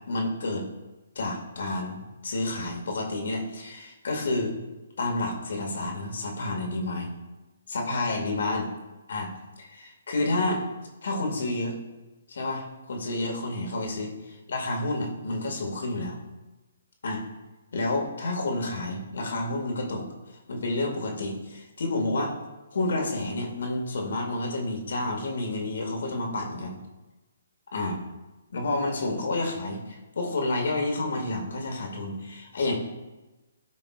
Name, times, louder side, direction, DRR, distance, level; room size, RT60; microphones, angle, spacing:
voice 1, 0.1-0.7 1.2-4.6 5.0-7.1 7.7-8.7 9.1-9.3 9.6-10.6 11.0-11.8 12.3-16.2 17.0-17.2 17.7-20.1 20.5-22.3 22.7-26.8 27.7-28.0 28.5-32.7, left 2 dB, 70° left, 1 dB, 2.1 m, -30 dB
13.5 x 5.3 x 2.5 m, 1.1 s
hypercardioid pair, 145°, 0 cm